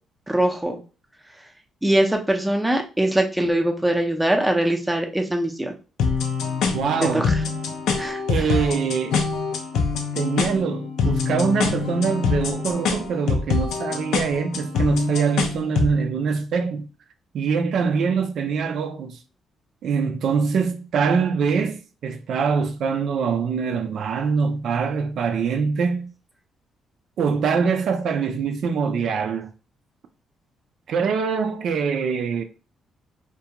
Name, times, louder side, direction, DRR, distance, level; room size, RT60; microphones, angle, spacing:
voice 1, 0.3-0.8 1.8-5.7 7.0-7.4 8.0-8.6, right 1 dB, 5° right, 0.5 m, -22 dB
sound 1, 6.0-16.0, left 5 dB, 80° left, 0.5 m, -25 dB
voice 2, 6.7-7.3 8.3-9.2 10.1-16.9 17.3-19.2 19.8-26.1 27.2-29.5 30.9-32.4, right 5 dB, 70° right, 0.3 m, -23 dB
2.3 x 2.2 x 2.8 m
cardioid pair, 90°, 0 cm